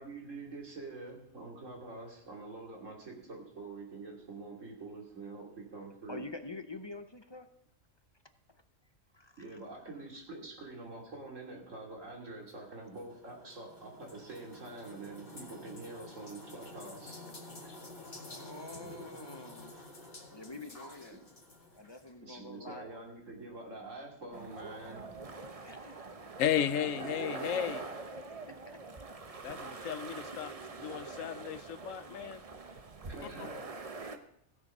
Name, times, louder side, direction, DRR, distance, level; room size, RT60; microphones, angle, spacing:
voice 1, 0.0-6.2 9.4-17.2 18.7-19.0 22.2-25.1 32.2-32.3 33.1-33.7, right 3 dB, 75° right, 0 dB, 3.0 m, -46 dB
voice 2, 6.1-7.5 8.5-8.6 9.1-9.6 18.2-21.2 21.7-23.0 25.5-26.4 28.4-29.7, left 2 dB, 30° left, 8 dB, 0.6 m, -48 dB
sound 1, 12.5-22.1, left 1 dB, 45° left, 2.1 m, -50 dB
sound 2, 24.3-34.2, right 3 dB, 30° right, 0.8 m, -44 dB
voice 3, 26.4-27.9 29.4-32.4 33.2-33.5, left 9 dB, 90° left, 14 dB, 1.1 m, -34 dB
16.0 x 7.3 x 5.4 m, 0.76 s
omnidirectional pair, 1.3 m